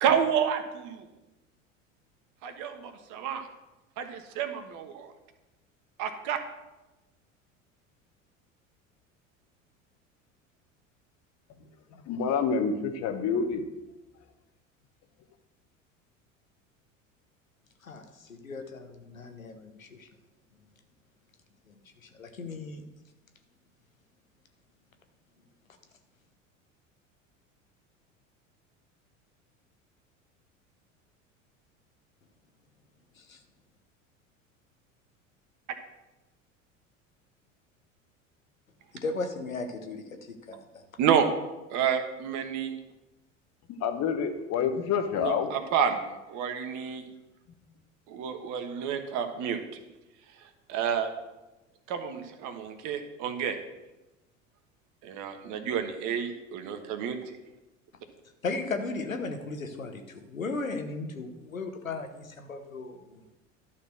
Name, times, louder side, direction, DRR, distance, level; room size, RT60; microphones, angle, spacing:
voice 1, 0.0-1.1 2.4-3.4 4.0-5.1 6.0-6.4 41.0-41.3 41.7-42.8 45.2-46.0 46.3-47.1 48.1-49.6 50.7-51.1 51.9-53.5 55.0-57.4, right 8 dB, 50° right, 7 dB, 1.3 m, -29 dB
voice 2, 12.1-13.6 43.7-45.5, left 6 dB, 40° left, 6 dB, 1.2 m, -28 dB
voice 3, 17.8-20.1 22.0-22.8 33.2-33.4 38.9-40.0 40.5-40.8 58.4-63.3, left 3 dB, 90° left, 6 dB, 1.0 m, -36 dB
12.0 x 4.3 x 6.3 m, 1.0 s
figure-of-eight pair, 75°, 39 cm